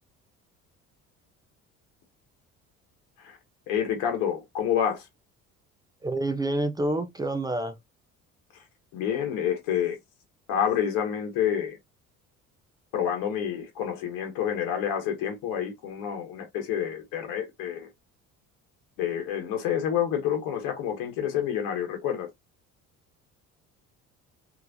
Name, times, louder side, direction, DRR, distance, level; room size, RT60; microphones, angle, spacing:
voice 1, 3.7-5.1 8.9-10.0 10.5-11.8 12.9-17.9 19.0-22.3, left 9 dB, 55° left, 1.1 m, -28 dB
voice 2, 6.0-7.8, right 2 dB, 10° right, 0.3 m, -28 dB
3.3 x 3.1 x 2.6 m
figure-of-eight pair, 55°, 42 cm